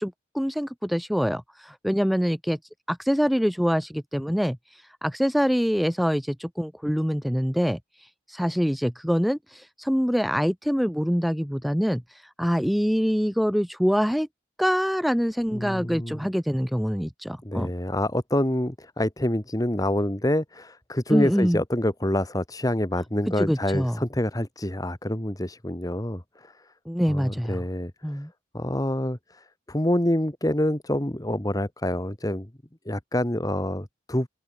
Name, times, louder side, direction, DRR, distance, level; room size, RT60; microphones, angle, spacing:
voice 1, 0.0-2.6 2.9-14.3 14.6-17.7 21.1-21.6 23.4-24.0 26.9-27.7 28.0-28.3, equal, ahead, 0.4 m, -25 dB
voice 2, 15.5-16.2 17.4-26.5 27.1-28.2 28.5-32.5 32.9-34.3, left 1 dB, 20° left, 1.8 m, -27 dB
open air
head